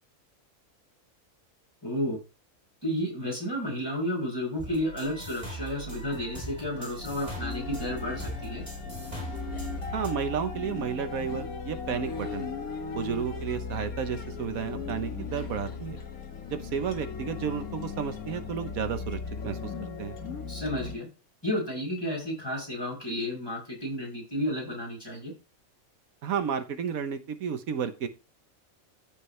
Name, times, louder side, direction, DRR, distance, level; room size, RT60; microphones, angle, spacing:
voice 1, 1.8-2.2 2.8-8.6 20.5-21.1 21.4-25.3, equal, 15° left, -1 dB, 5.1 m, -32 dB
sound 1, 4.6-10.1, right 1 dB, 10° right, 3.8 m, -40 dB
sound 2, 7.0-21.0, left 5 dB, 85° left, 1.9 m, -37 dB
voice 2, 9.9-12.5 12.9-16.0 16.5-20.2 26.2-28.1, right 7 dB, 85° right, 9 dB, 1.4 m, -32 dB
14.5 x 5.3 x 3.2 m, 0.30 s
omnidirectional pair, 1.4 m